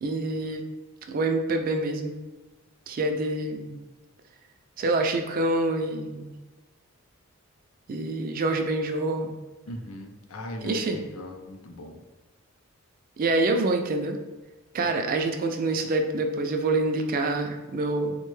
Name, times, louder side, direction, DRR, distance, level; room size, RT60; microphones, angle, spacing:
voice 1, 0.0-0.6 1.1-2.2 2.9-3.8 4.8-6.3 7.9-9.4 10.6-11.0 13.2-14.2 14.7-18.2, right 2 dB, 40° right, 4 dB, 0.3 m, -26 dB
voice 2, 9.7-12.0, left 1 dB, 75° left, 4 dB, 0.5 m, -39 dB
3.8 x 2.2 x 3.1 m, 1.2 s
head